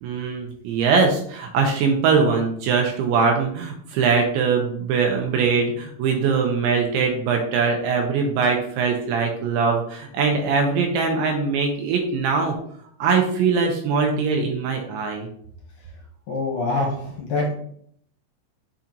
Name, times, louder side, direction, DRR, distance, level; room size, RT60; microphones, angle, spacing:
voice 1, 0.0-12.6 13.0-15.3, right 5 dB, 75° right, 2 dB, 2.9 m, -22 dB
voice 2, 16.3-17.5, left 2 dB, 65° left, -2 dB, 2.9 m, -25 dB
7.3 x 4.3 x 3.9 m, 0.64 s
omnidirectional pair, 5.7 m